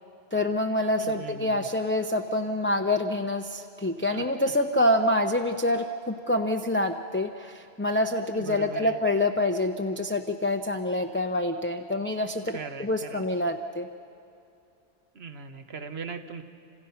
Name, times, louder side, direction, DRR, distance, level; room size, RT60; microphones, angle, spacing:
voice 1, 0.3-13.9, left 1 dB, 10° left, 4 dB, 0.7 m, -26 dB
voice 2, 1.0-1.7 4.1-4.2 8.3-9.0 12.5-13.2 15.1-16.4, right 5 dB, 60° right, 8 dB, 1.5 m, -39 dB
29.5 x 26.5 x 5.8 m, 2.7 s
omnidirectional pair, 1.2 m